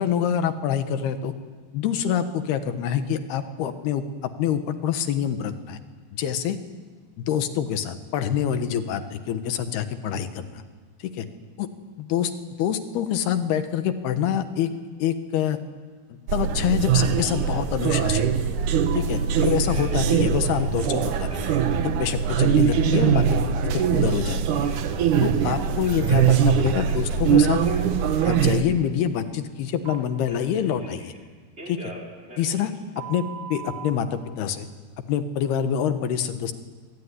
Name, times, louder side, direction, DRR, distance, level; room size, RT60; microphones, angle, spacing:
voice 1, 0.0-1.3 1.7-5.8 6.1-6.6 7.2-10.6 11.0-11.3 11.6-11.7 12.0-12.3 12.6-14.7 15.0-15.6 16.1-18.3 18.9-21.6 21.8-24.7 25.2-27.6 28.2-31.1 31.7-31.9 32.4-32.7 33.1-34.7 35.1-36.5, left 9 dB, 70° left, 9 dB, 2.9 m, -26 dB
sound 1, 16.3-28.6, right 7 dB, 75° right, 1.8 m, -22 dB
Telephone, 18.8-19.0 19.4-20.0 20.4-21.8 22.3-24.8 25.1-27.8 28.2-28.6 29.9-31.2 31.6-33.9, right 3 dB, 15° right, 4.6 m, -41 dB
24.5 x 23.5 x 9.8 m, 1.5 s
omnidirectional pair, 5.5 m